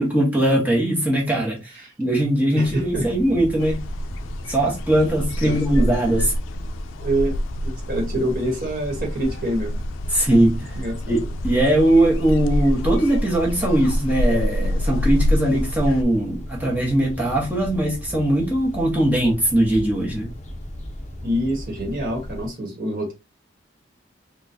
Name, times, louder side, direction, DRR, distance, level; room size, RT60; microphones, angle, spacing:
voice 1, 0.0-3.8 4.5-6.3 10.1-10.8 11.1-20.3, right 1 dB, 10° right, 1.0 m, -20 dB
voice 2, 2.5-3.1 4.5-4.6 5.4-5.9 7.0-7.4 7.6-9.8 10.7-11.3 21.2-23.1, right 1 dB, 50° right, 1.3 m, -26 dB
sound 1, 2.6-22.5, left 1 dB, 35° left, 0.7 m, -36 dB
sound 2, 3.6-16.0, equal, 90° left, 0.3 m, -27 dB
4.3 x 2.3 x 2.6 m
head